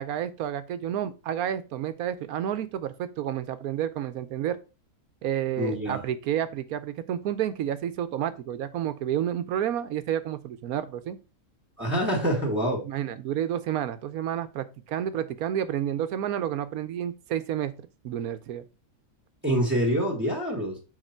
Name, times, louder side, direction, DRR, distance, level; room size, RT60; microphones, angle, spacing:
voice 1, 0.0-4.6 5.2-11.2 12.8-17.7 18.0-18.6, right 10 dB, 90° right, 1.2 m, -30 dB
voice 2, 5.6-6.0 11.8-12.8 19.4-20.8, equal, 10° right, 1.8 m, -26 dB
6.6 x 4.5 x 4.5 m
omnidirectional pair, 1.5 m